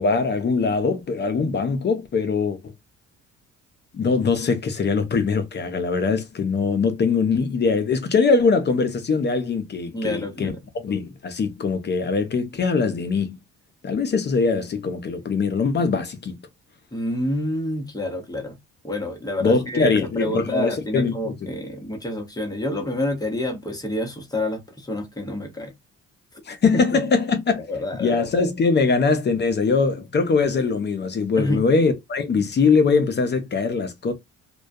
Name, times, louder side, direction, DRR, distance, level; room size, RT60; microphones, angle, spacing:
voice 1, 0.0-2.7 3.9-13.4 13.8-16.3 19.4-21.3 26.5-27.6 28.0-34.1, left 4 dB, 35° left, 0.5 m, -22 dB
voice 2, 9.9-10.6 16.9-18.6 18.8-25.7 26.9-27.0 27.7-28.2 31.3-31.6, left 1 dB, 10° left, 0.8 m, -28 dB
2.2 x 2.2 x 2.6 m
cardioid pair, 90°, 30 cm